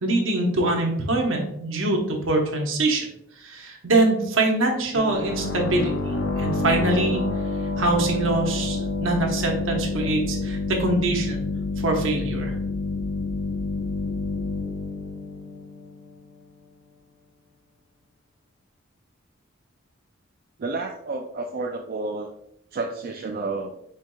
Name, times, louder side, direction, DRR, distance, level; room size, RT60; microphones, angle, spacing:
voice 1, 0.0-3.1 3.4-5.9 6.4-7.2 7.8-11.4 11.8-12.5, right 2 dB, 85° right, 1 dB, 1.0 m, -23 dB
sound 1, 5.0-16.4, left 3 dB, 70° left, 0.7 m, -28 dB
voice 2, 20.6-22.3 22.7-23.7, right 3 dB, 50° right, 3 dB, 0.4 m, -30 dB
4.6 x 4.6 x 2.2 m, 0.76 s
head